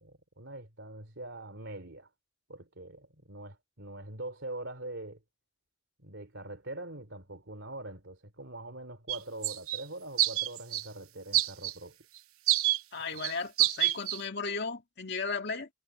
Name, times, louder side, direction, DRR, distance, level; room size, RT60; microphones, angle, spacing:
voice 1, 0.0-2.1 2.5-5.2 6.0-12.0, right 1 dB, 60° right, 3.2 m, -43 dB
sound 1, 9.1-9.2 9.4-9.8 10.2-10.8 11.3-11.7 12.5-12.8 13.2-13.3 13.6-14.2, right 15 dB, 80° right, 0.9 m, -27 dB
voice 2, 12.9-15.7, left 4 dB, 50° left, 2.3 m, -35 dB
head